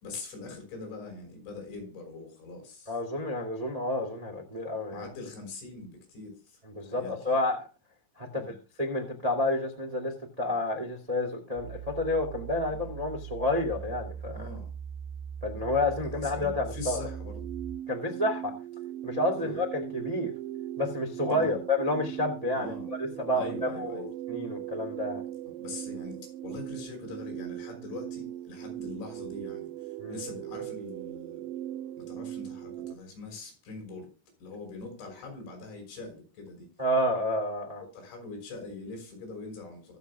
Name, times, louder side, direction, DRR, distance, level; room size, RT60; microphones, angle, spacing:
voice 1, 0.0-3.0 4.9-7.3 8.3-8.6 12.7-12.9 14.3-14.7 16.1-17.5 19.3-19.6 21.3-21.6 22.6-22.9 23.3-24.1 25.5-31.4 32.0-34.1 34.4-36.7 37.9-40.0, left 3 dB, 65° left, 7.8 m, -43 dB
voice 2, 2.9-5.1 6.7-7.7 8.2-10.1 10.4-14.5 15.4-17.0 17.9-18.5 19.0-20.3 20.8-25.2 30.0-30.2 36.8-37.8, left 1 dB, 30° right, 0.7 m, -30 dB
sound 1, 11.5-17.7, right 7 dB, 35° left, 4.8 m, -40 dB
sound 2, 16.8-33.0, right 12 dB, 80° right, 3.0 m, -39 dB
23.5 x 7.9 x 2.2 m
omnidirectional pair, 5.7 m